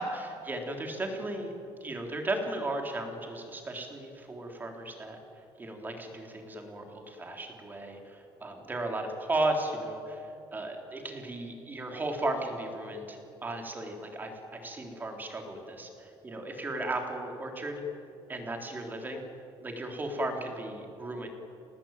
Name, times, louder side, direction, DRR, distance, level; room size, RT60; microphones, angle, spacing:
voice 1, 0.0-1.5 1.8-17.8 18.3-19.2 19.6-21.3, right 2 dB, 20° right, 2 dB, 3.7 m, -35 dB
28.5 x 19.0 x 9.1 m, 2.7 s
cardioid pair, 150°, 10 cm